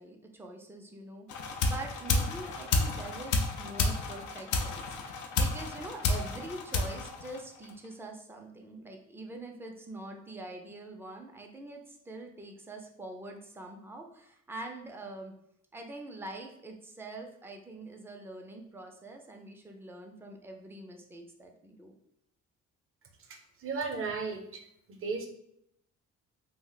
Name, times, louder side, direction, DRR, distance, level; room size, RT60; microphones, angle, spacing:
voice 1, 0.0-15.3 15.7-22.0, right 2 dB, 10° right, 2 dB, 0.4 m, -44 dB
sound 1, 1.3-7.8, left 3 dB, 75° left, 0.5 m, -31 dB
voice 2, 23.3-24.6 24.9-25.3, right 4 dB, 45° right, 4 dB, 0.7 m, -35 dB
2.4 x 2.1 x 3.8 m, 0.73 s
cardioid pair, 90°, 30 cm